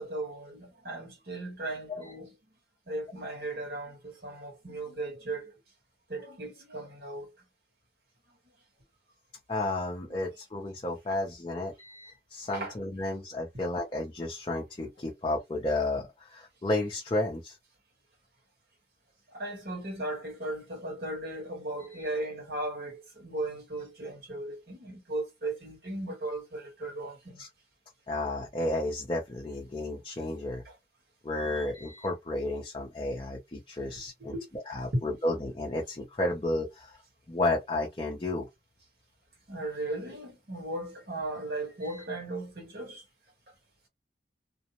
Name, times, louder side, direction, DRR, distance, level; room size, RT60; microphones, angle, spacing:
voice 1, 0.0-2.3 2.9-5.5 6.1-7.3 12.5-12.7 19.3-27.4 30.6-30.7 31.5-31.7 34.3-34.4 34.9-35.0 39.5-43.0, right 2 dB, 60° right, 1.2 m, -36 dB
voice 2, 9.5-17.6 21.9-22.1 27.4-27.5 28.1-30.6 31.2-34.3 34.7-37.0 37.3-38.5 41.8-42.1, left 2 dB, 25° left, 0.5 m, -32 dB
2.5 x 2.0 x 2.9 m
head